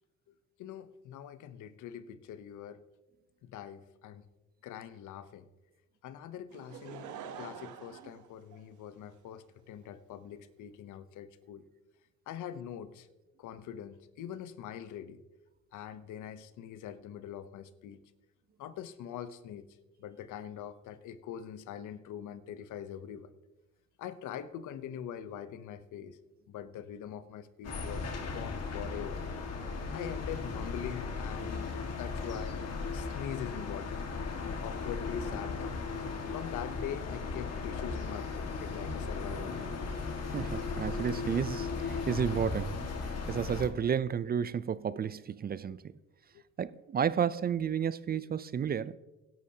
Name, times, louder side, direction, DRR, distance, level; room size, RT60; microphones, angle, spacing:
voice 1, 0.6-2.8 3.4-4.2 4.6-5.5 6.0-7.1 7.4-11.6 12.3-13.1 13.4-15.2 15.7-18.0 18.6-19.6 20.0-23.3 24.0-26.2 26.5-29.2 29.9-31.6 31.9-32.6 32.9-34.0 34.4-35.8 36.3-39.8 44.9-45.0, left 9 dB, 80° left, 0.7 m, -43 dB
Laughter / Crowd, 6.5-9.1 9.8-9.9, right 7 dB, 80° right, 1.0 m, -46 dB
sound 1, 27.6-43.7, left 4 dB, 55° left, 1.7 m, -36 dB
voice 2, 40.3-45.9 46.6-49.0, right 8 dB, 30° right, 0.4 m, -32 dB
16.5 x 11.0 x 2.8 m
cardioid pair, 90°, 30 cm